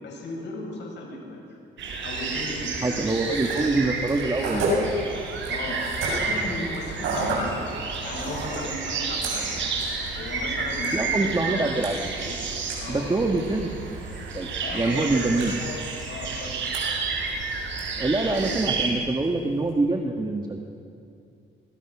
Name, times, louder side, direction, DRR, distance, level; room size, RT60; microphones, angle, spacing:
voice 1, 0.0-1.4 2.0-3.1 5.5-7.7 8.0-9.6 10.1-11.7 12.8-13.1 14.6-16.5, left 2 dB, 65° left, -1 dB, 7.9 m, -36 dB
sound 1, 1.8-18.9, right 4 dB, 70° right, 5.4 m, -31 dB
voice 2, 2.8-4.9 10.9-12.0 12.9-13.9 14.3-14.5 14.8-15.6 18.0-20.6, right 2 dB, 20° right, 2 dB, 1.8 m, -25 dB
sound 2, 3.1-19.7, right 1 dB, 85° right, 7.6 m, -35 dB
24.0 x 23.0 x 6.2 m, 2.5 s
cardioid pair, 90°, 20 cm